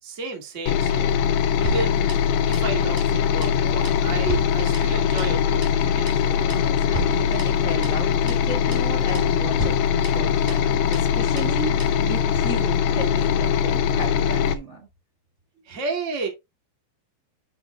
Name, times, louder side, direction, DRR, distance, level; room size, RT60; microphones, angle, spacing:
voice 1, 0.0-1.2 1.6-2.1 2.5-6.5 15.6-16.3, right 4 dB, 20° right, 2.2 m, -32 dB
sound 1, 0.7-14.6, left 8 dB, 85° left, 3.0 m, -22 dB
sound 2, 1.6-2.7 3.0-3.2 3.4-3.6 3.8-5.4 5.6-5.8 6.1-6.2 6.5-6.7 6.9-8.0 8.3-8.4 8.7-8.9 9.1-9.3 9.6-10.7 10.9-11.1 11.4-11.5 11.8-12.0, right 1 dB, 5° right, 2.8 m, -34 dB
voice 2, 6.4-14.9, right 2 dB, 55° right, 0.7 m, -34 dB
8.8 x 6.8 x 2.4 m
omnidirectional pair, 4.8 m